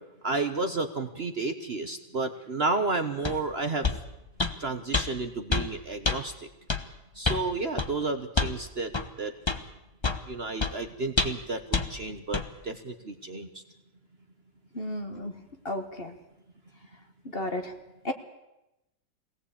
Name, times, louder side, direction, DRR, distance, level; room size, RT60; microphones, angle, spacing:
voice 1, 0.2-3.9 4.6-6.5 7.2-8.9 9.2-9.3 10.3-13.5, right 3 dB, 40° right, 7 dB, 1.1 m, -31 dB
sound 1, 3.2-3.4 3.8-4.0 4.4-4.6 4.9-5.1 5.5-5.7 6.0-6.2 6.7-6.8 7.2-7.4 7.8-7.9 8.4-8.6 8.9-9.1 9.5-9.6 10.0-10.2 10.6-10.7 11.2-11.4 11.7-11.9 12.3-12.5, left 4 dB, 20° left, 0.9 m, -26 dB
voice 2, 14.7-15.3 15.6-16.1 17.3-17.7 18.0-18.1, left 1 dB, 35° left, 6 dB, 1.5 m, -32 dB
22.5 x 17.5 x 8.5 m, 0.94 s
omnidirectional pair, 1.8 m